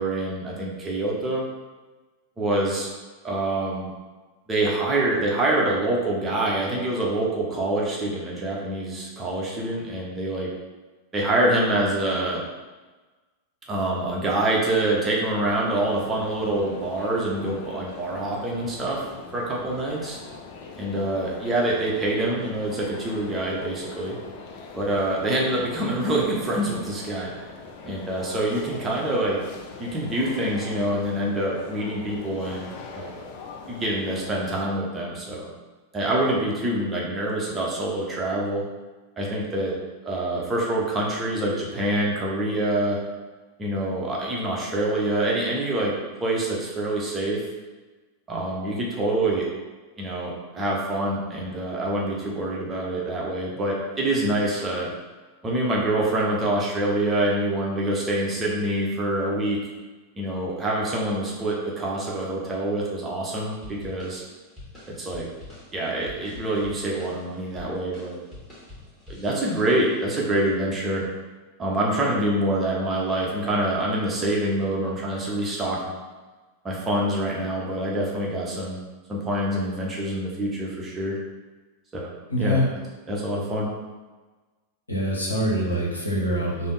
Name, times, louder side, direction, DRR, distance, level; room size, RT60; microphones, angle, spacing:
voice 1, 0.0-1.4 2.4-2.9 3.2-3.9 4.5-10.5 11.1-12.4 13.7-19.0 19.3-20.2 20.8-24.2 24.7-27.3 27.8-29.4 29.8-32.7 32.9-33.2 33.7-35.5 35.9-38.6 39.2-39.7 40.0-43.0 43.6-45.9 46.2-47.4 48.3-49.5 50.0-54.9 55.4-59.6 60.2-64.2 65.0-65.3 65.7-68.2 69.1-71.1 71.6-76.0 76.6-78.8 79.1-81.2 81.9-82.1 82.4-82.6 83.1-83.7, right 1 dB, 20° right, -4 dB, 0.7 m, -26 dB
sound 1, 15.4-34.7, left 4 dB, 45° left, 0.4 m, -41 dB
sound 2, 63.6-70.1, left 2 dB, 10° left, 1.5 m, -45 dB
voice 2, 82.3-82.7 84.9-86.7, equal, 80° left, -3 dB, 0.8 m, -24 dB
3.3 x 2.0 x 3.8 m, 1.3 s
figure-of-eight pair, 90°, 0 cm